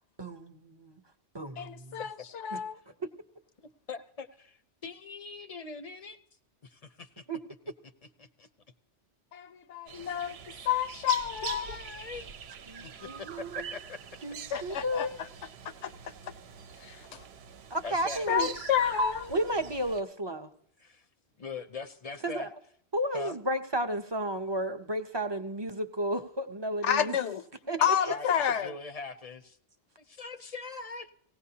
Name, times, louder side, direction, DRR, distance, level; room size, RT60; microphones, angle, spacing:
voice 1, 0.2-1.0 1.3-2.0 3.0-3.1 7.3-7.4 12.7-13.7 14.2-15.1 17.7-18.5 19.0-20.5 22.2-22.5 22.9-27.1 27.7-27.9, right 1 dB, 30° right, 0.6 m, -32 dB
voice 2, 1.6-2.8 9.3-10.4 10.6-11.6 14.5-15.1 15.8-15.9 16.8-17.2 18.3-19.3 26.8-27.4 27.8-28.7, left 9 dB, 85° left, 1.0 m, -29 dB
voice 3, 3.6-6.2 6.6-7.3 8.0-8.5 10.0-10.1 11.4-12.3 13.0-14.0 17.8-18.3 20.8-21.1 21.4-22.5 23.1-23.4 27.8-29.6 30.0-31.1, left 4 dB, 40° left, 0.6 m, -42 dB
sound 1, 9.9-20.0, right 7 dB, 65° right, 0.9 m, -44 dB
19.0 x 16.5 x 2.8 m
omnidirectional pair, 1.2 m